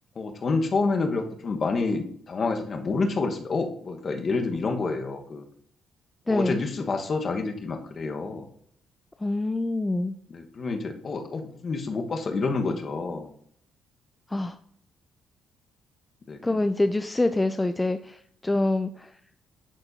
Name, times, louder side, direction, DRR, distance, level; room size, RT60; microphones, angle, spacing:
voice 1, 0.2-5.4 6.3-8.5 10.3-13.3 16.3-16.6, left 3 dB, 45° left, 4 dB, 1.2 m, -28 dB
voice 2, 6.3-6.6 9.2-10.1 14.3-14.6 16.4-19.1, left 2 dB, 15° left, 9 dB, 0.4 m, -25 dB
11.5 x 4.3 x 2.7 m, 0.64 s
cardioid pair, 90°, 0 cm